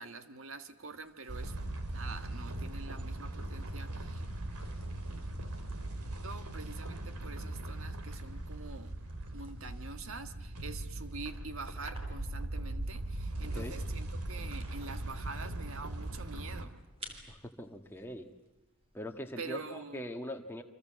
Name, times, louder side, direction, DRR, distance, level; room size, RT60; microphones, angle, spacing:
voice 1, 0.0-1.5 1.9-4.2 6.2-8.9 9.3-16.7 19.4-20.0, right 4 dB, 65° right, 9 dB, 1.5 m, -45 dB
sound 1, 0.9-19.2, right 1 dB, 25° right, 3.5 m, -57 dB
sound 2, 1.3-16.7, right 1 dB, 90° right, 2.8 m, -40 dB
voice 2, 17.3-18.3 18.9-20.6, left 1 dB, 10° left, 3 dB, 1.7 m, -42 dB
29.0 x 25.0 x 7.6 m, 0.97 s
head